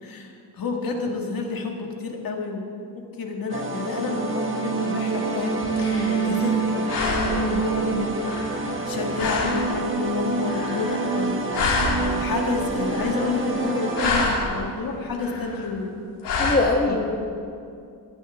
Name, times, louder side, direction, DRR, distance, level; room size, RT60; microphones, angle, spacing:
voice 1, 0.0-2.7 2.9-8.2 8.8-11.4 12.0-16.0 16.9-17.2, left 4 dB, 55° left, 1 dB, 2.0 m, -29 dB
sound 1, 3.5-14.2, right 4 dB, 30° right, 1.6 m, -27 dB
sound 2, 5.4-6.6 6.9-7.6 8.2-8.9 9.2-9.7 10.5-11.3 11.5-12.3 12.7-13.5 13.8-14.6 15.1-15.7 16.2-16.6, left 4 dB, 85° left, 2.6 m, -28 dB
voice 2, 16.3-17.2, left 3 dB, 25° left, 1 dB, 1.1 m, -23 dB
18.0 x 14.0 x 3.6 m, 2.4 s
cardioid pair, 125°, 41 cm